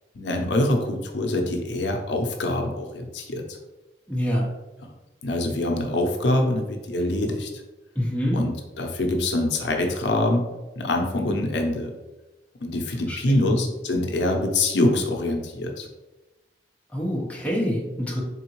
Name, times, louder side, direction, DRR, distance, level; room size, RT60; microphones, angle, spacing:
voice 1, 0.2-3.6 5.2-7.5 8.3-10.4 10.8-11.9 12.6-15.9, left 1 dB, 85° left, 3 dB, 0.6 m, -24 dB
voice 2, 4.1-4.5 7.9-8.4 13.1-13.5 16.9-18.2, equal, 10° left, -5 dB, 0.9 m, -26 dB
3.8 x 3.6 x 3.0 m, 1.1 s
head